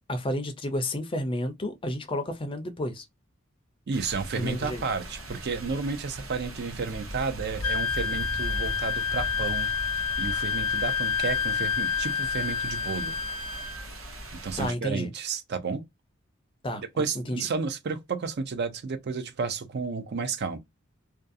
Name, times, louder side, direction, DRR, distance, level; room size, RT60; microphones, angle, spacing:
voice 1, 0.1-3.0 4.3-4.8 14.6-15.1 16.6-16.8 17.3-17.4, left 1 dB, 25° left, 0.4 m, -31 dB
voice 2, 3.9-9.7 10.2-13.1 14.4-15.8 17.0-20.6, right 5 dB, 50° right, 0.5 m, -32 dB
sound 1, 3.9-14.7, equal, 80° right, 0.9 m, -39 dB
Wind instrument woodwind instrument, 7.6-13.9, left 6 dB, 75° left, 0.6 m, -29 dB
2.5 x 2.3 x 2.5 m
head